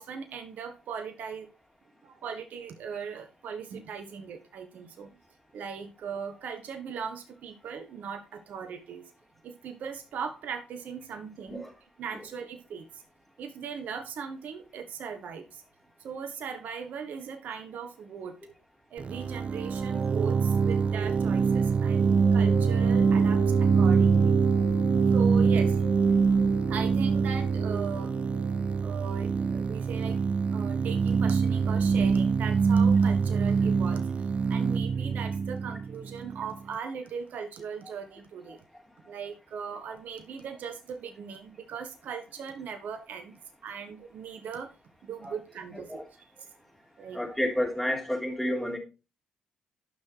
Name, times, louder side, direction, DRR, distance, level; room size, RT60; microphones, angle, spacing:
voice 1, 0.0-1.5 2.0-5.1 5.5-9.0 9.4-11.6 12.0-13.0 13.4-15.6 16.0-18.4 18.9-24.4 25.1-25.8 26.7-28.1 28.8-34.2 34.5-38.6 39.0-44.7 45.0-46.0 47.0-47.2, right 6 dB, 65° right, 1.5 m, -39 dB
sound 1, 19.0-36.6, right 5 dB, 40° right, 0.5 m, -24 dB
Wind instrument woodwind instrument, 22.2-28.9, left 7 dB, 75° left, 3.3 m, -44 dB
voice 2, 45.7-46.0 47.1-48.8, equal, 5° left, 3.4 m, -30 dB
11.0 x 6.1 x 4.7 m
supercardioid pair, 55°, 3 cm